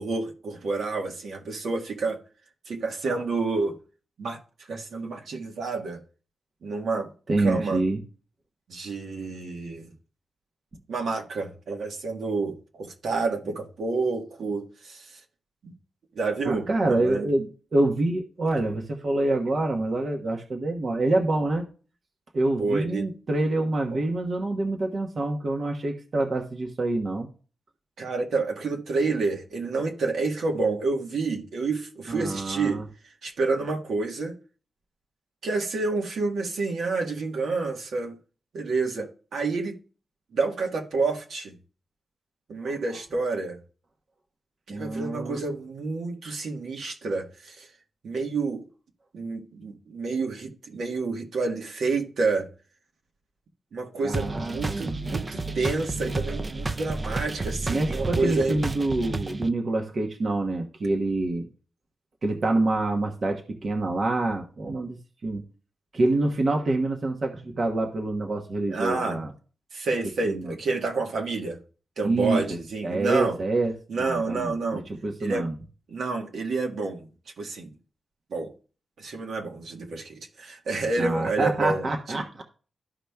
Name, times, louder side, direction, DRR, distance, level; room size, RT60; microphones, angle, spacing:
voice 1, 0.0-2.2 2.7-3.8 4.2-4.4 4.7-6.0 6.6-7.1 7.4-7.8 8.7-9.9 10.9-15.2 15.6-15.7 16.1-17.3 22.6-23.1 23.9-24.0 28.0-32.8 33.2-34.3 35.4-38.1 38.5-39.8 40.3-41.5 42.5-43.6 44.7-47.7 48.0-48.6 49.1-52.5 53.7-58.6 68.7-69.2 69.7-71.6 72.0-73.4 73.9-74.8 75.2-75.5 75.9-77.1 77.4-77.7 78.3-78.5 79.0-82.2, right 3 dB, 70° right, 1.4 m, -29 dB
voice 2, 7.3-8.0 16.4-21.7 22.3-27.3 32.1-32.8 42.6-43.0 44.7-45.4 54.0-55.0 57.7-61.5 62.2-65.4 65.9-69.3 70.2-70.5 72.0-72.6 72.8-75.5 81.0-82.4, right 2 dB, 45° right, 1.1 m, -26 dB
sound 1, 54.1-59.5, right 3 dB, 25° right, 0.5 m, -31 dB
13.0 x 5.0 x 2.3 m
wide cardioid pair, 125°, 0 cm